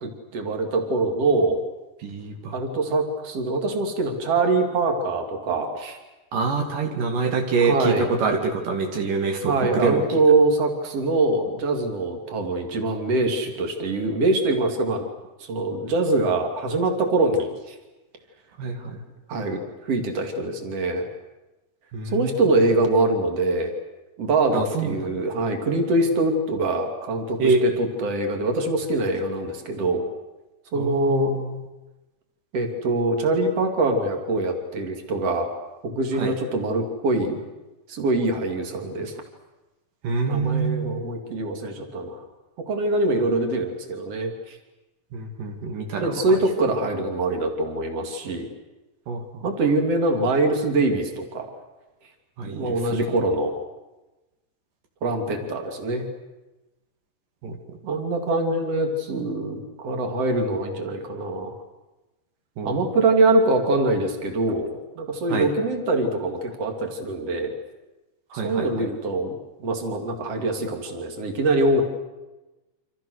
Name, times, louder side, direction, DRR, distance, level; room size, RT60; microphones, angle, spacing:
voice 1, 0.0-1.6 2.5-6.0 7.6-8.1 9.4-15.1 15.4-17.8 19.3-21.1 22.1-23.7 24.2-30.0 30.7-31.4 32.5-35.5 35.8-37.4 37.9-39.1 40.3-42.2 42.6-44.6 46.0-48.5 49.4-51.5 52.5-53.5 55.0-56.0 57.8-61.5 62.6-67.5 68.4-71.8, right 2 dB, 45° right, 4 dB, 3.8 m, -24 dB
voice 2, 2.0-2.5 6.3-10.0 18.6-19.0 21.9-22.4 24.5-25.0 27.4-27.6 30.8-31.5 36.2-36.3 40.0-41.0 45.1-46.2 49.1-49.2 52.4-52.8 57.4-57.6 62.6-62.8 65.3-65.5 68.3-68.7, right 4 dB, 75° right, 3 dB, 3.9 m, -25 dB
28.0 x 26.5 x 6.6 m, 1.1 s
omnidirectional pair, 3.9 m